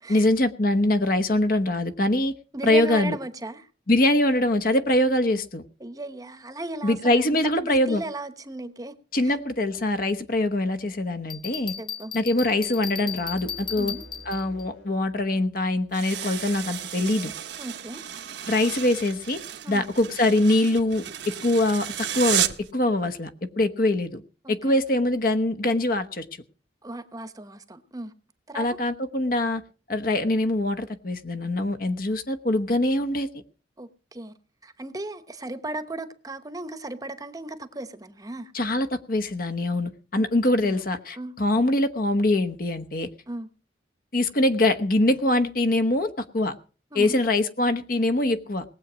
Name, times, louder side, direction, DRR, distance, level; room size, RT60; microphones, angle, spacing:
voice 1, 0.1-2.3 2.6-3.2 3.9-5.6 6.8-8.0 9.1-11.7 12.1-13.9 14.3-17.3 18.5-19.4 19.7-22.5 22.7-23.3 23.6-24.2 24.5-26.2 28.5-29.6 29.9-33.4 38.5-43.1 44.1-46.5 46.9-48.6, left 1 dB, 50° left, 1.1 m, -23 dB
voice 2, 2.5-3.7 5.8-9.4 11.8-12.1 13.8-14.0 17.6-18.0 19.6-19.8 24.4-24.7 26.8-28.1 28.5-28.8 33.8-34.3 34.6-38.5 40.2-40.3 40.5-40.8 41.2-41.3 43.3-43.5 46.9-47.2, right 2 dB, 20° right, 0.9 m, -36 dB
Bell, 11.3-14.6, left 8 dB, 25° left, 0.6 m, -35 dB
sound 1, 12.2-15.0, equal, 90° left, 3.2 m, -47 dB
sound 2, 15.9-22.7, right 11 dB, 75° right, 1.0 m, -32 dB
19.0 x 8.1 x 6.2 m
head